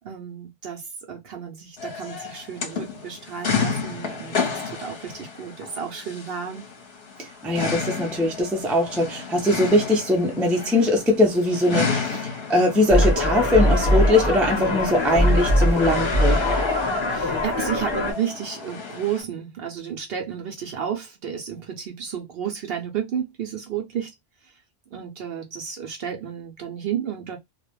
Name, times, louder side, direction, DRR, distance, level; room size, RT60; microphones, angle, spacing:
voice 1, 0.0-6.7 17.1-24.1 24.9-27.4, right 8 dB, 60° right, 0.7 m, -32 dB
sound 1, 1.8-19.2, left 5 dB, 55° left, 0.9 m, -32 dB
voice 2, 7.2-12.2 12.5-16.4, left 1 dB, ahead, 0.3 m, -21 dB
sound 2, 12.9-18.1, left 1 dB, 25° left, 0.7 m, -21 dB
2.3 x 2.1 x 2.9 m
omnidirectional pair, 1.3 m